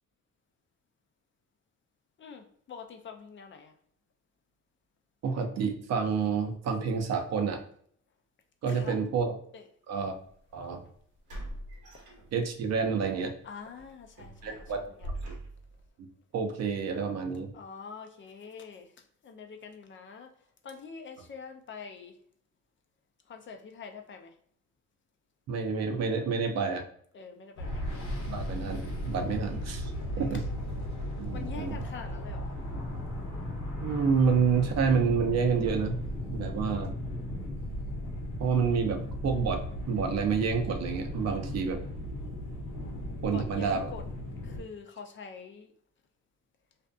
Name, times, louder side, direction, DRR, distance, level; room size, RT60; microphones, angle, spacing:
voice 1, 2.2-3.7 8.7-9.0 9.5-9.6 13.4-14.6 15.0-15.1 17.5-18.9 19.2-20.3 20.6-22.1 23.3-24.3 27.1-27.9 30.1-30.4 31.3-32.5 42.8-44.0 44.4-45.7, left 5 dB, 40° left, 4 dB, 0.4 m, -45 dB
voice 2, 5.2-7.6 8.6-9.4 9.9-10.2 10.5-10.8 12.3-13.3 14.4-14.9 16.0-16.1 16.3-17.5 25.5-26.8 28.3-29.9 30.2-30.4 31.2-31.8 33.8-36.0 36.3-36.9 38.4-41.8 43.2-43.9, right 5 dB, 60° right, 5 dB, 0.6 m, -28 dB
sound 1, 10.2-10.3 11.3-12.7 13.1-13.3 13.8-15.9, right 1 dB, 90° right, 1.1 m, -42 dB
sound 2, 27.6-44.6, left 1 dB, 85° left, 0.9 m, -36 dB
sound 3, 32.5-37.5, left 2 dB, 5° left, 0.9 m, -43 dB
2.6 x 2.4 x 2.3 m, 0.62 s
cardioid pair, 90°, 30 cm